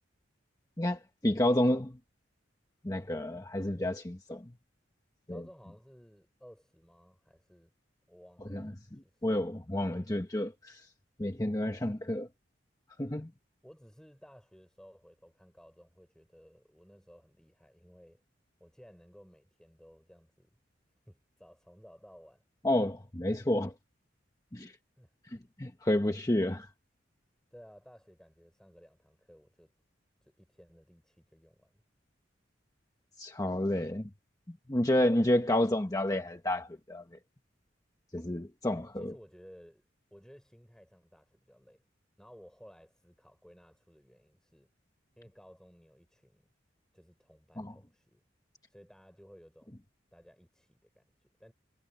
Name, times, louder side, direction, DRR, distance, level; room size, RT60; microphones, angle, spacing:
voice 1, 0.8-2.0 2.8-4.4 5.3-5.4 8.5-10.9 11.2-12.3 13.0-13.3 22.6-23.7 24.5-24.7 25.3-26.7 33.2-34.1 34.5-37.0 38.1-39.1 47.6-47.7, left 1 dB, 20° left, 1.1 m, -30 dB
voice 2, 5.3-7.7 8.1-8.7 9.0-9.3 13.6-18.2 18.6-20.6 21.1-22.4 25.0-25.1 27.5-29.7 30.2-31.8 38.9-41.8 42.2-44.7 45.2-46.5 46.9-48.2 48.7-49.8 50.1-51.5, equal, 5° left, 6.0 m, -57 dB
head